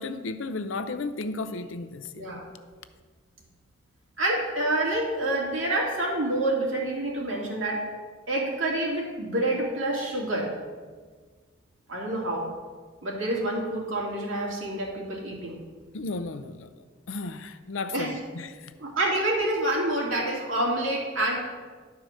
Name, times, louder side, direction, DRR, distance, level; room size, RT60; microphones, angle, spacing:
voice 1, 0.0-2.4 15.9-16.7 17.1-18.7, left 3 dB, 75° left, 11 dB, 0.6 m, -34 dB
voice 2, 2.2-2.5 4.2-7.8 8.3-10.5 11.9-12.5 13.0-15.6 17.9-18.2 18.8-21.4, right 1 dB, 80° right, -2 dB, 2.5 m, -27 dB
11.0 x 4.7 x 6.4 m, 1.5 s
head